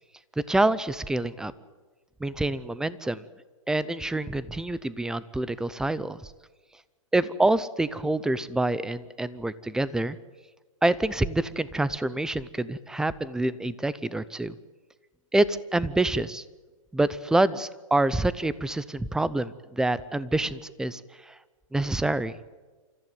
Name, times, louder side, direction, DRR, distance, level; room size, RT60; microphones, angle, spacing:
voice 1, 0.5-1.5 2.2-3.2 3.7-6.3 7.1-10.2 10.8-14.6 15.3-16.4 16.9-21.0 21.3-21.4 21.7-22.3, right 2 dB, 5° right, 18 dB, 0.6 m, -26 dB
27.5 x 14.5 x 9.4 m, 1.3 s
hypercardioid pair, 140°, 18 cm